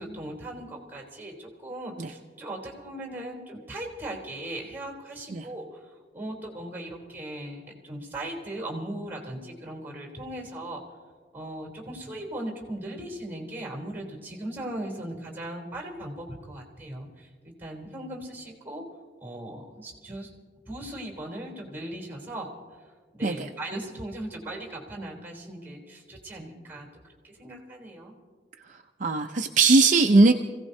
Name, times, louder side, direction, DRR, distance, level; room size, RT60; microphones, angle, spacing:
voice 1, 0.0-5.8 6.1-10.8 11.3-18.8 19.2-20.3 20.7-22.5 23.1-26.9 27.2-28.1, right 1 dB, 10° right, 0 dB, 3.5 m, -38 dB
voice 2, 29.0-30.3, right 3 dB, 50° right, 4 dB, 0.6 m, -19 dB
28.0 x 16.5 x 2.7 m, 1.5 s
head